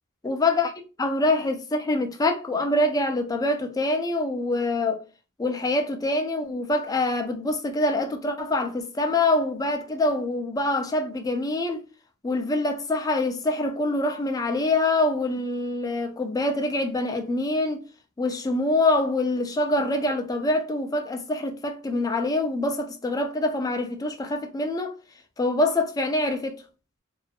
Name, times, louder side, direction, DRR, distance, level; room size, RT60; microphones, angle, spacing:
voice 1, 0.2-0.7 1.0-5.0 5.4-11.8 12.2-17.8 18.2-24.9 25.4-26.6, left 2 dB, 15° left, 0.3 m, -25 dB
2.5 x 2.4 x 2.2 m
head